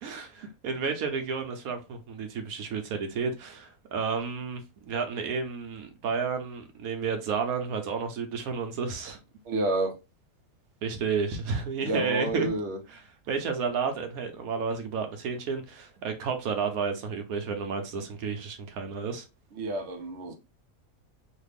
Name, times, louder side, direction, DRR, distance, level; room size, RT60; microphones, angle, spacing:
voice 1, 0.0-9.2 10.8-12.5 12.9-19.2, right 5 dB, 75° right, 1.1 m, -31 dB
voice 2, 9.5-10.0 11.8-12.8 19.6-20.3, right 2 dB, 60° right, 0.8 m, -29 dB
3.2 x 2.4 x 3.3 m
omnidirectional pair, 1.5 m